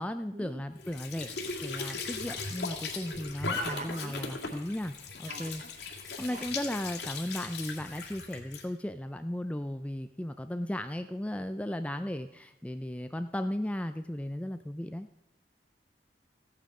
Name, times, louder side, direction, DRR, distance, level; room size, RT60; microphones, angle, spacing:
voice 1, 0.0-1.3 1.6-5.6 6.2-15.2, left 1 dB, 5° left, 9 dB, 0.4 m, -36 dB
Squeak / Sink (filling or washing) / Trickle dribble, 0.8-8.7, left 4 dB, 75° left, 2.3 m, -38 dB
voice 2, 3.5-4.2 5.3-5.7 6.3-6.5, right 3 dB, 40° right, 9 dB, 1.1 m, -43 dB
15.0 x 9.1 x 4.8 m, 0.92 s
head